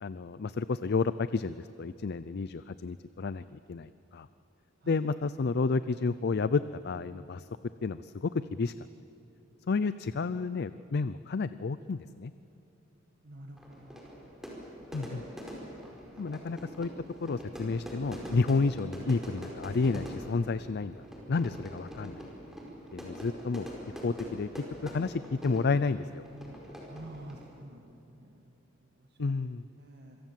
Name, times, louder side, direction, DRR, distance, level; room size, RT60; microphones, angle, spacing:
voice 1, 0.0-4.3 4.9-7.5 7.8-8.7 9.7-12.3 14.9-15.2 16.2-16.9 17.2-22.3 22.9-23.7 24.0-24.5 24.8-26.2 29.2-29.6, left 4 dB, 55° left, 14 dB, 0.5 m, -31 dB
voice 2, 13.2-14.1 15.9-16.5 16.7-17.0 26.9-28.4 29.0-29.1 29.8-30.2, right 1 dB, 55° right, 1 dB, 1.8 m, -49 dB
Fire / Fireworks, 13.6-27.6, equal, ahead, 4.8 m, -44 dB
26.0 x 24.5 x 7.6 m, 3.0 s
head